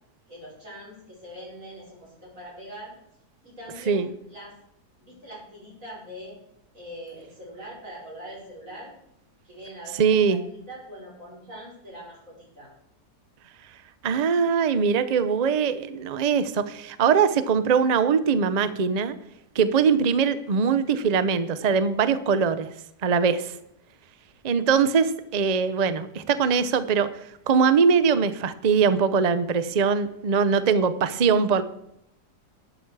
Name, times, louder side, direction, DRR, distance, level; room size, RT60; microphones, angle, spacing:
voice 1, 0.3-3.0 3.4-4.6 5.0-6.4 6.7-8.9 9.4-10.4 10.7-12.7, equal, 50° right, -5 dB, 6.1 m, -42 dB
voice 2, 10.0-10.4 14.0-19.1 19.5-22.7 23.0-23.5 24.4-27.1 27.5-31.6, right 6 dB, 70° right, 13 dB, 0.4 m, -22 dB
12.5 x 8.9 x 4.7 m, 0.77 s
omnidirectional pair, 1.7 m